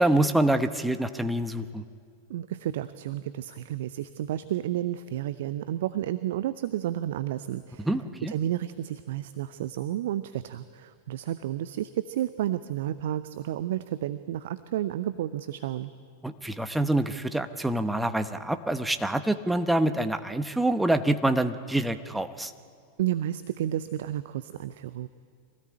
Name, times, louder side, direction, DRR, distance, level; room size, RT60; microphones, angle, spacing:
voice 1, 0.0-1.8 7.8-8.3 16.2-22.5, right 1 dB, 5° right, 9 dB, 1.0 m, -26 dB
voice 2, 2.3-7.9 8.3-15.9 23.0-25.1, right 12 dB, 55° right, 14 dB, 0.6 m, -31 dB
24.5 x 17.5 x 8.7 m, 2.2 s
figure-of-eight pair, 90°, 0 cm